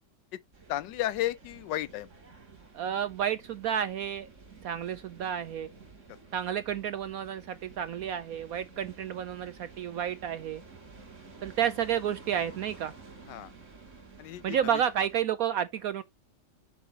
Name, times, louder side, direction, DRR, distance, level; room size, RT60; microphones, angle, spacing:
sound 1, 0.5-15.2, right 4 dB, 45° right, 2.7 m, -52 dB
voice 1, 0.7-2.1 13.3-13.5 14.2-14.8, left 14 dB, 85° left, 1.3 m, -33 dB
voice 2, 2.7-4.3 4.6-5.7 6.3-10.6 11.4-12.9 14.4-16.0, right 9 dB, 70° right, 0.9 m, -31 dB
8.0 x 6.7 x 2.9 m
omnidirectional pair, 1.9 m